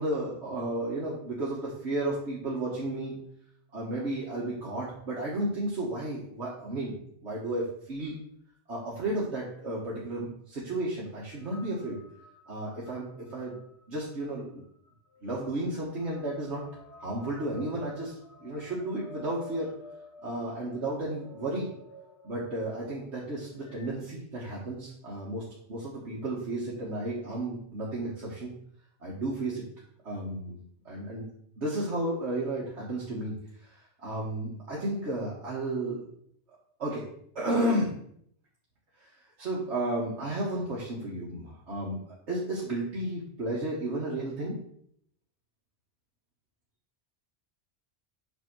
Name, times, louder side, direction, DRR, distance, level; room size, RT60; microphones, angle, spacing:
voice 1, 0.0-3.1 3.7-8.2 8.7-12.0 12.5-13.6 13.9-14.6 15.2-16.7 17.0-18.1 18.4-19.7 20.2-21.7 22.2-28.5 29.0-29.7 30.0-30.6 30.8-31.3 31.6-33.3 33.6-36.1 36.8-37.1 37.3-37.9 39.0-39.1 39.4-42.0 42.3-44.5, right 1 dB, 80° right, -5 dB, 1.6 m, -33 dB
sound 1, 11.4-23.9, left 2 dB, 80° left, 1.5 m, -52 dB
7.9 x 2.8 x 6.0 m, 0.67 s
omnidirectional pair, 1.1 m